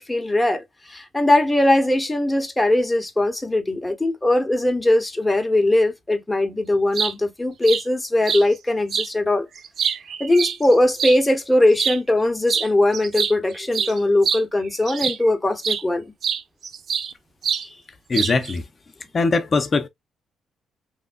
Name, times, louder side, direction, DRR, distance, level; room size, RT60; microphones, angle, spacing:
voice 1, 0.0-9.5 10.2-16.1 17.6-17.8, left 1 dB, 10° left, 1.0 m, -20 dB
sound 1, 6.7-7.1 7.6-7.8 8.3-8.4 8.9-9.1 9.6-11.2 11.7-12.0 12.5-12.7 12.9-15.3 15.6-15.8 16.2-17.1 17.4-17.7 18.1-18.5, right 7 dB, 55° right, 0.4 m, -25 dB
voice 2, 18.1-18.6 19.1-19.9, left 3 dB, 35° left, 0.7 m, -21 dB
3.5 x 3.2 x 2.4 m
cardioid pair, 90°, 0 cm